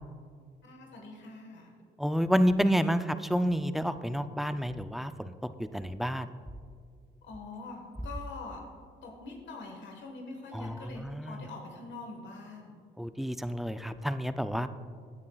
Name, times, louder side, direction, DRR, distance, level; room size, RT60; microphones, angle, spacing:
voice 1, 0.6-1.7 7.2-8.6 9.0-12.7, left 3 dB, 65° left, 1 dB, 1.5 m, -44 dB
voice 2, 2.0-6.3 10.5-11.4 13.0-14.7, equal, ahead, 11 dB, 0.4 m, -29 dB
16.5 x 9.5 x 2.3 m, 2.1 s
cardioid pair, 90°, 20 cm